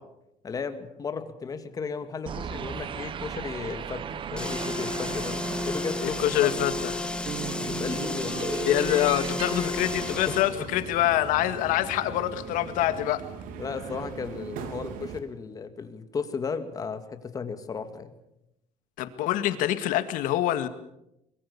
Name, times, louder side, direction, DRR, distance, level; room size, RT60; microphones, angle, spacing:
voice 1, 0.4-5.4 5.7-6.5 7.4-8.7 10.3-10.6 13.6-18.1, left 5 dB, 25° left, 9 dB, 2.2 m, -35 dB
sound 1, 2.3-10.8, right 8 dB, 35° right, 1.2 m, -37 dB
sound 2, 4.3-10.5, left 2 dB, 5° left, 1.8 m, -32 dB
voice 2, 6.0-6.9 8.6-13.2 19.0-20.7, left 13 dB, 75° left, 11 dB, 2.0 m, -25 dB
Subway metro underground, 9.7-15.2, right 6 dB, 75° right, 3.2 m, -40 dB
23.5 x 22.5 x 7.0 m, 0.84 s
cardioid pair, 150°, 14 cm